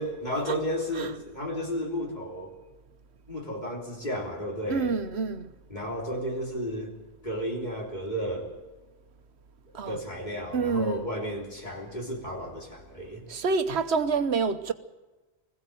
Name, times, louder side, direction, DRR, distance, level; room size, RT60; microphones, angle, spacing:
voice 1, 0.0-2.5 3.3-5.0 5.7-6.9 7.2-8.5 9.9-13.2, equal, 45° left, 3.6 m, -33 dB
voice 2, 4.7-5.5 9.7-10.0 10.5-11.0 13.3-14.7, right 4 dB, 80° right, 1.2 m, -27 dB
21.0 x 16.0 x 7.8 m
omnidirectional pair, 1.1 m